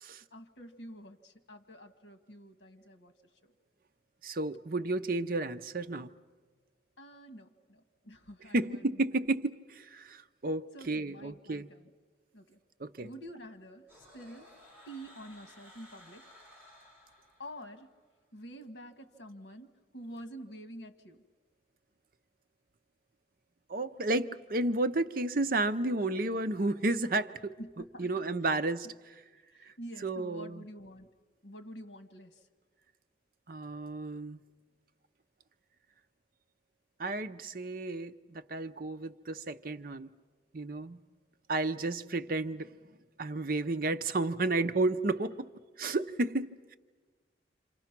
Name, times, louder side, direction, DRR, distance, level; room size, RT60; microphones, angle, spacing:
voice 1, 0.3-3.1 3.4-3.5 7.0-9.0 10.7-11.9 12.3-12.6 13.0-14.5 14.8-16.2 17.4-17.9 18.3-21.2 27.6-28.6 29.5-31.1 31.4-32.5, equal, 75° left, 8 dB, 1.6 m, -48 dB
voice 2, 4.2-6.1 8.5-11.7 12.8-13.1 23.7-27.6 28.0-28.9 29.6-29.7 30.0-30.6 33.5-34.4 37.0-40.1 40.5-41.0 41.5-42.7 43.2-45.5 45.8-46.8, right 2 dB, 50° right, 11 dB, 0.7 m, -32 dB
sound 1, 13.9-17.9, left 1 dB, 10° right, 6.7 m, -57 dB
28.0 x 27.0 x 6.0 m, 1.4 s
head